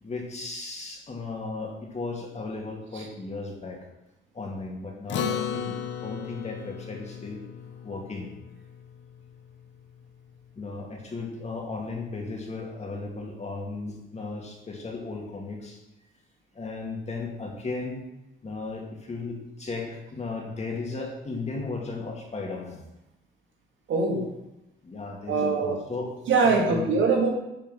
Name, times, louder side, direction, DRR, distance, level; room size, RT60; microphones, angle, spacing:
voice 1, 0.0-3.8 4.3-5.8 6.0-7.4 7.8-8.3 10.6-15.8 16.5-18.0 18.4-22.8 24.8-26.1 26.4-26.9, left 3 dB, 35° left, 0 dB, 2.2 m, -35 dB
Acoustic guitar, 5.1-9.8, left 8 dB, 70° left, 0.8 m, -35 dB
voice 2, 23.9-24.2 25.3-25.8 26.3-27.3, right 4 dB, 75° right, 0 dB, 2.3 m, -22 dB
9.3 x 4.6 x 6.2 m, 0.93 s
cardioid pair, 90°, 20 cm